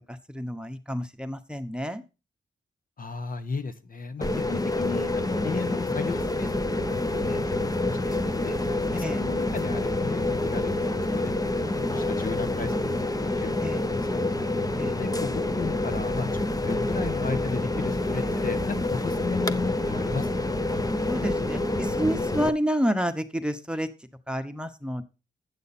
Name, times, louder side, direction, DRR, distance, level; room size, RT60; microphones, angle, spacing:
voice 1, 0.1-2.0 9.0-9.2 13.6-13.8 14.7-15.0 18.1-18.4 21.1-23.9 24.3-25.0, equal, 5° right, 7 dB, 1.1 m, -29 dB
voice 2, 3.0-11.3 11.9-20.6, left 4 dB, 50° left, 10 dB, 1.2 m, -35 dB
sound 1, 4.2-22.5, left 2 dB, 20° left, 0.8 m, -27 dB
sound 2, 6.1-22.3, right 5 dB, 30° right, 1.0 m, -42 dB
9.7 x 8.2 x 4.3 m, 0.30 s
cardioid pair, 80°, 19 cm